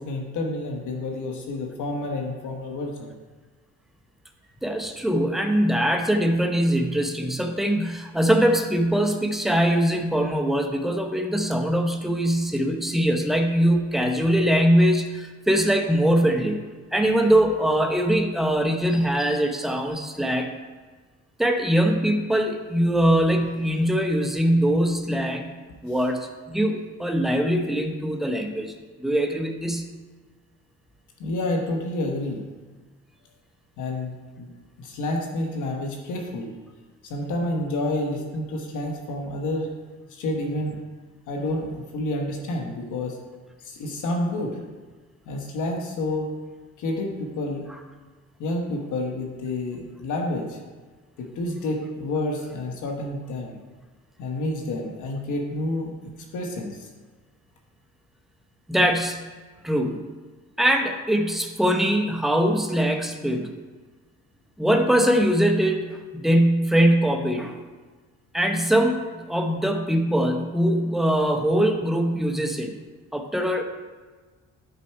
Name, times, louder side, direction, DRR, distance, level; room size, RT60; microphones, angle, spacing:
voice 1, 0.0-3.2 31.2-32.4 33.8-34.5 34.8-36.5 37.0-39.7 40.1-40.8 41.3-43.2 43.6-44.6 45.3-46.3 46.8-47.6 48.4-50.6 51.2-53.6 54.2-55.9 56.3-56.9, left 1 dB, 80° left, 1 dB, 1.2 m, -29 dB
voice 2, 4.6-16.6 16.9-20.5 21.4-25.5 25.8-28.7 29.0-29.9 58.7-59.2 59.6-60.0 60.6-63.5 64.6-67.6 68.3-72.7 73.1-73.6, equal, ahead, 4 dB, 0.8 m, -22 dB
9.4 x 4.3 x 4.5 m, 1.4 s
cardioid pair, 90°, 30 cm